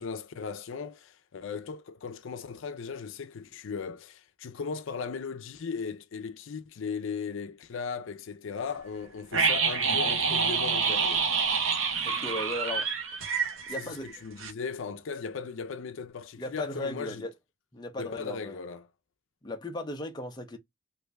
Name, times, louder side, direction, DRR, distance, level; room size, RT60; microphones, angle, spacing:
voice 1, 0.0-11.3 13.7-17.3 18.0-18.9, left 5 dB, 70° left, 0.4 m, -37 dB
sound 1, 9.3-14.1 14.4-14.5, right 5 dB, 75° right, 0.9 m, -27 dB
voice 2, 12.0-12.9 13.7-14.1 16.4-17.3 17.7-18.6 19.4-20.6, left 1 dB, 20° left, 0.6 m, -36 dB
3.4 x 2.6 x 3.1 m
head